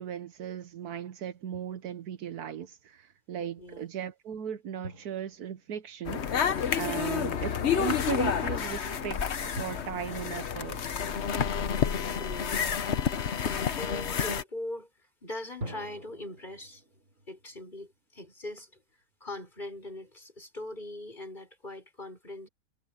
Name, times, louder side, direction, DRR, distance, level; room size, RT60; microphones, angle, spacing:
voice 1, 0.0-6.3 6.7-10.8, right 8 dB, 75° right, 1.5 m, -37 dB
Drum, 1.5-2.3 4.8-6.6 9.6-12.0 15.6-18.8, right 1 dB, 55° right, 7.1 m, -47 dB
sound 1, 6.0-14.4, left 7 dB, 50° left, 1.2 m, -29 dB
voice 2, 12.1-12.7 13.4-14.9 15.2-16.8 17.3-18.8 19.2-22.5, left 1 dB, 30° left, 7.2 m, -41 dB
omnidirectional pair, 1.7 m